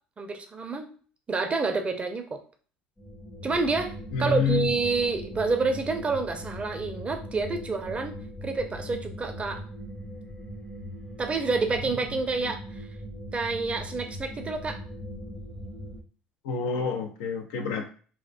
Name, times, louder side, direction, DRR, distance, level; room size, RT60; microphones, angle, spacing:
voice 1, 0.2-0.9 1.3-2.4 3.4-3.9 4.2-9.6 11.2-12.8 13.3-14.8, right 4 dB, 25° right, 6 dB, 0.5 m, -28 dB
sound 1, 3.0-16.0, equal, 15° left, 0.6 m, -40 dB
voice 2, 4.1-4.7 11.8-12.5 16.4-17.9, left 6 dB, 70° left, 4 dB, 0.4 m, -29 dB
2.4 x 2.1 x 2.5 m, 0.41 s
hypercardioid pair, 65°, 4 cm